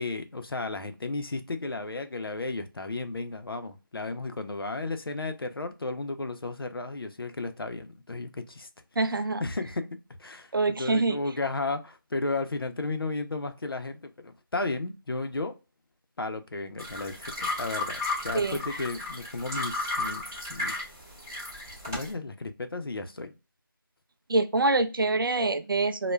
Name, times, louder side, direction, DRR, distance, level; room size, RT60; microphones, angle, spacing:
voice 1, 0.0-8.7 9.4-15.5 16.2-20.8 21.8-23.3, left 3 dB, 80° left, 0.5 m, -34 dB
voice 2, 9.0-9.4 10.5-11.2 18.3-18.6 24.3-26.1, right 3 dB, 70° right, 0.4 m, -25 dB
sound 1, 16.8-22.1, left 2 dB, 10° right, 0.8 m, -34 dB
2.3 x 2.1 x 3.1 m
figure-of-eight pair, 170°, 12 cm